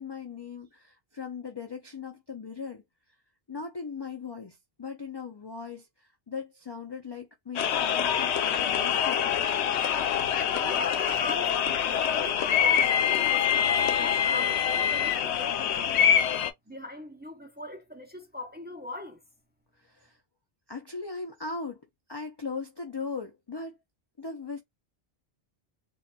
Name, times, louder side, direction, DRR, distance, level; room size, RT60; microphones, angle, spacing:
voice 1, 0.0-2.8 3.5-9.3 19.8-20.2 20.7-23.8 24.2-24.6, left 4 dB, 40° left, 0.4 m, -39 dB
sound 1, 7.6-16.5, left 8 dB, 90° left, 0.9 m, -25 dB
voice 2, 10.5-16.0 16.7-19.2, left 2 dB, 10° right, 0.5 m, -40 dB
4.0 x 2.3 x 2.2 m
omnidirectional pair, 1.1 m